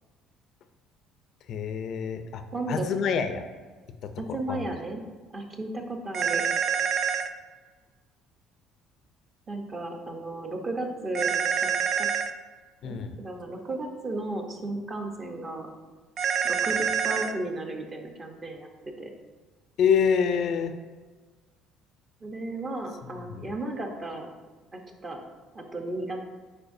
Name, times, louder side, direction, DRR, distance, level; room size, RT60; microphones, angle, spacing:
voice 1, 1.5-2.4 2.7-3.4 4.5-4.6 12.8-13.1 19.8-20.7 23.3-23.5, left 7 dB, 50° left, 8 dB, 0.4 m, -26 dB
voice 2, 2.5-3.2 4.2-5.0 5.3-6.4 9.5-11.7 12.0-12.1 12.8-15.7 16.4-19.1 22.2-24.3 24.7-25.2 25.5-26.2, right 2 dB, 25° right, 3 dB, 0.8 m, -34 dB
sound 1, 6.1-7.3 11.1-12.3 16.2-17.3, right 7 dB, 40° right, 0.3 m, -26 dB
8.7 x 4.7 x 2.6 m, 1.3 s
cardioid pair, 155°, 0 cm